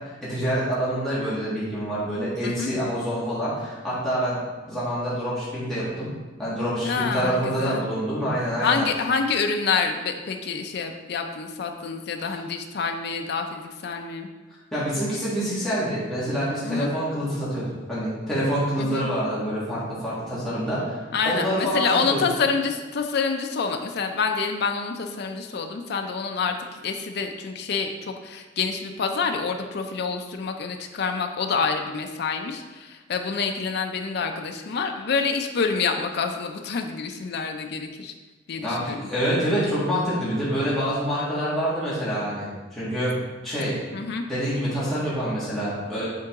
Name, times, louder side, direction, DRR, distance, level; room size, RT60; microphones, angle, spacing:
voice 1, 0.3-4.4 4.7-6.1 6.4-8.8 14.7-22.2 38.6-43.1 43.4-43.7 44.3-46.1, equal, ahead, -11 dB, 1.7 m, -26 dB
voice 2, 2.4-2.7 6.8-7.9 8.6-14.3 16.6-16.9 18.8-19.1 21.1-38.1 38.5-39.1 43.9-44.2, left 5 dB, 55° left, 4 dB, 0.4 m, -27 dB
7.5 x 3.8 x 3.6 m, 1.2 s
head